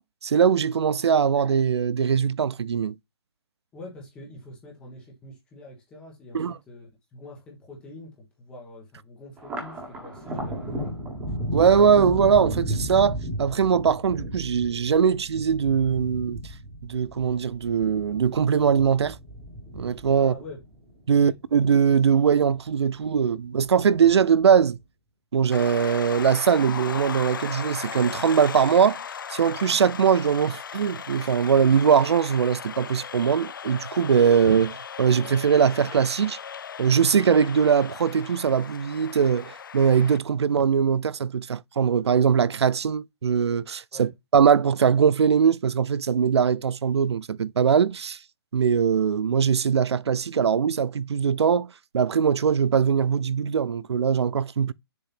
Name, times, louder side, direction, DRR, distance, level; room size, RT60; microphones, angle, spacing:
voice 1, 0.0-3.0 6.3-6.5 11.5-16.4 16.8-19.2 19.7-20.3 21.1-24.8 25.3-29.0 29.3-36.4 36.8-48.2 48.5-54.7, right 7 dB, 85° right, 0.5 m, -21 dB
voice 2, 3.7-10.9 20.1-20.6 21.1-21.4 43.9-44.1, left 1 dB, 5° left, 1.2 m, -45 dB
Thunder, 9.4-22.0 22.4-23.2 23.6-24.4, right 1 dB, 10° right, 1.6 m, -35 dB
sound 1, 25.5-40.2, left 7 dB, 50° left, 0.4 m, -37 dB
6.9 x 2.8 x 5.8 m
hypercardioid pair, 170°, 14 cm